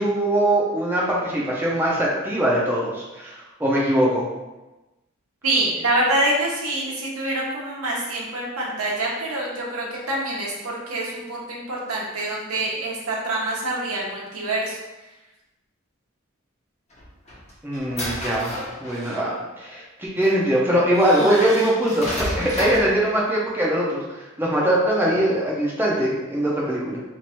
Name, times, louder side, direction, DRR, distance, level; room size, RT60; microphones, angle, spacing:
voice 1, 0.0-4.2 17.6-24.0 24.4-27.0, right 1 dB, 10° right, -5 dB, 0.6 m, -22 dB
voice 2, 5.4-14.8, right 1 dB, 90° right, -4 dB, 1.0 m, -26 dB
sound 1, 16.9-19.4 20.2-20.3 20.9-23.0, left 1 dB, 30° left, 0.9 m, -32 dB
2.9 x 2.5 x 4.2 m, 1.1 s
head